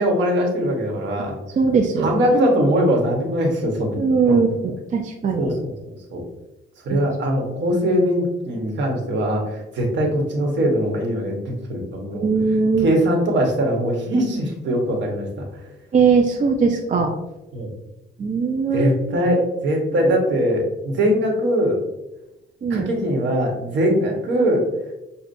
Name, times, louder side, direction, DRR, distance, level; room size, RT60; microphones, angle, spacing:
voice 1, 0.0-1.4 2.0-4.0 4.2-4.4 5.4-6.2 6.8-12.2 12.8-15.7 17.5-17.7 18.7-21.8 22.7-24.7, equal, 65° right, 1 dB, 1.2 m, -21 dB
voice 2, 1.6-2.1 4.0-5.5 6.9-7.0 12.1-12.9 15.9-17.1 18.2-19.2 22.6-22.9, right 5 dB, 40° right, 2 dB, 0.5 m, -20 dB
6.7 x 2.3 x 2.6 m, 0.98 s
cardioid pair, 90°, 20 cm